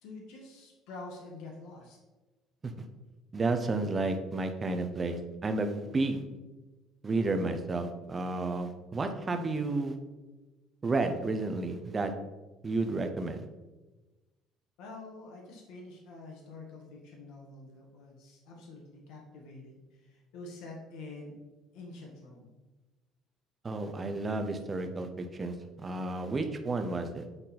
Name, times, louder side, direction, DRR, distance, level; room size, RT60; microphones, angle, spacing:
voice 1, 0.0-2.0 14.8-21.4 21.7-22.5, left 2 dB, 70° left, 0 dB, 1.5 m, -47 dB
voice 2, 3.3-6.2 7.0-9.9 10.8-12.1 12.6-13.4 23.6-27.2, right 3 dB, 15° right, 7 dB, 0.6 m, -31 dB
8.7 x 4.0 x 4.1 m, 1.2 s
cardioid pair, 175°, 0 cm